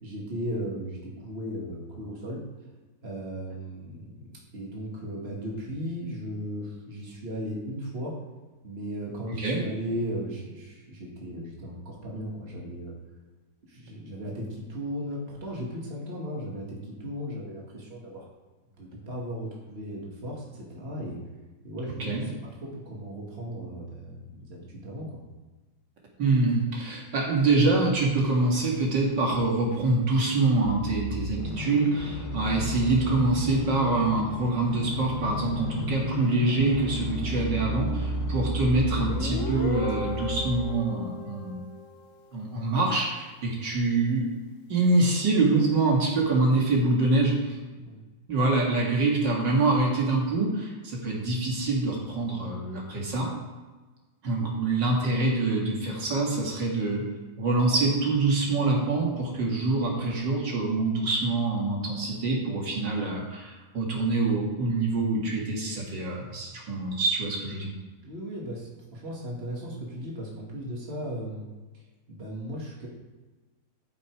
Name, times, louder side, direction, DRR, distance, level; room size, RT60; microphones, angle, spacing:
voice 1, 0.0-2.4 3.0-4.2 4.5-8.1 8.6-12.9 13.7-18.3 18.8-21.2 21.6-22.3 22.6-25.2 47.8-48.0 68.0-71.5 72.1-72.9, equal, 35° right, -3 dB, 2.3 m, -36 dB
voice 2, 26.2-41.7 42.3-44.3 44.7-47.6 48.3-53.3 54.2-57.0 57.4-67.7, right 2 dB, 70° right, -2 dB, 2.5 m, -25 dB
sound 1, 30.6-31.5 32.0-36.1 36.6-40.8, right 2 dB, 20° left, 2.1 m, -34 dB
sound 2, 31.3-39.3 39.9-41.2 41.8-41.9, left 7 dB, 70° left, 1.4 m, -37 dB
Guitar, 39.0-42.4, left 5 dB, 55° left, 1.0 m, -36 dB
13.0 x 5.9 x 4.8 m, 1.2 s
omnidirectional pair, 2.0 m